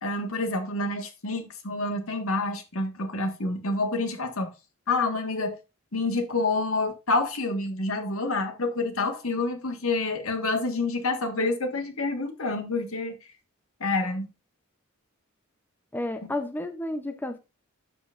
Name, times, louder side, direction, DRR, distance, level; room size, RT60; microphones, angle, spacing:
voice 1, 0.0-4.5 4.9-5.6 5.9-13.1 13.8-14.3 16.2-16.3, left 3 dB, 75° left, 1.5 m, -28 dB
voice 2, 15.9-17.4, left 1 dB, 10° left, 0.5 m, -31 dB
13.0 x 5.1 x 2.4 m
head